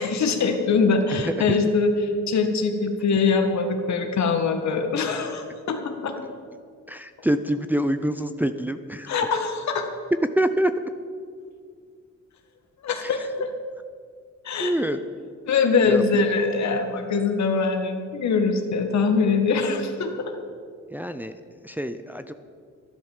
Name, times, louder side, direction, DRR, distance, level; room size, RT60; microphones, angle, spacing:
voice 1, 0.0-6.1 9.1-9.9 12.8-13.5 14.4-14.7 15.5-20.3, left 4 dB, 65° left, 5 dB, 1.9 m, -23 dB
voice 2, 6.9-9.1 10.4-10.7 13.0-13.1 14.6-15.0 15.8-16.0 20.9-21.3 21.6-22.3, right 1 dB, 5° right, 9 dB, 0.6 m, -25 dB
12.5 x 11.0 x 7.3 m, 2.1 s
cardioid pair, 90°, 30 cm